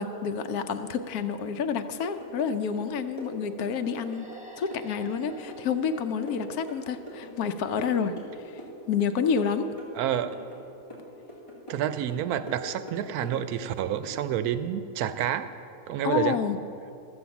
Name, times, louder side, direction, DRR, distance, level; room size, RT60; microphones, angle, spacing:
voice 1, 0.0-4.3 4.5-8.6 8.9-9.7 16.0-16.6, left 6 dB, 85° left, 9 dB, 1.2 m, -29 dB
sound 1, 2.0-2.5 2.8-4.4 4.7-7.5 7.8-8.7 9.0-10.6 10.9-11.8 12.1-13.7 14.0-14.2, equal, 20° left, 2.8 m, -42 dB
sound 2, 4.0-7.5, right 1 dB, 5° right, 1.1 m, -51 dB
voice 2, 10.0-10.4 11.7-15.5 15.9-16.4, right 10 dB, 90° right, 12 dB, 1.1 m, -29 dB
13.5 x 8.5 x 7.0 m, 2.7 s
omnidirectional pair, 1.5 m